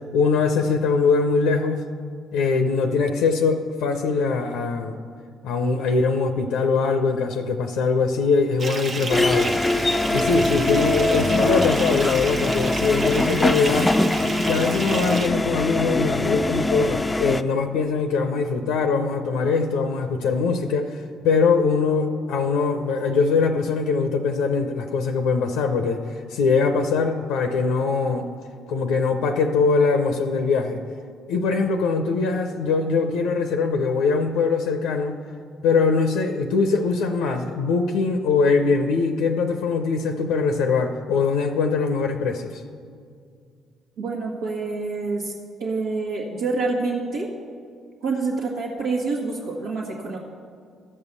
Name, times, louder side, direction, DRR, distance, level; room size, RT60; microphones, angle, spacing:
voice 1, 0.1-1.8 2.3-5.0 5.4-9.5 10.0-13.9 14.3-28.3 28.7-30.8 31.3-35.2 35.6-42.6, left 4 dB, 75° left, 6 dB, 0.6 m, -22 dB
Bathtub (filling or washing) / Fill (with liquid), 8.6-15.3, right 3 dB, 45° right, 0.8 m, -32 dB
sound 1, 9.1-17.4, left 2 dB, 20° left, 0.4 m, -23 dB
voice 2, 44.0-45.3 45.6-47.3 48.0-50.2, right 3 dB, 80° right, -7 dB, 1.4 m, -27 dB
13.5 x 5.5 x 6.8 m, 2.2 s
hypercardioid pair, 50°, 0 cm